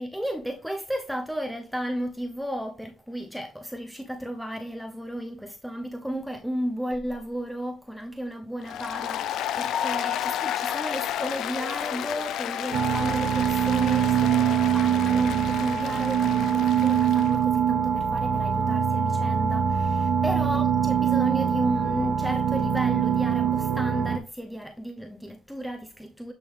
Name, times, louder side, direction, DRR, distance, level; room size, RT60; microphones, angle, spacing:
voice 1, 0.0-26.3, equal, ahead, 0.7 m, -33 dB
Applause, 8.6-17.3, left 10 dB, 80° left, 0.4 m, -32 dB
sound 1, 12.7-24.2, right 8 dB, 80° right, 0.7 m, -23 dB
8.1 x 3.6 x 3.3 m
cardioid pair, 90°, 0 cm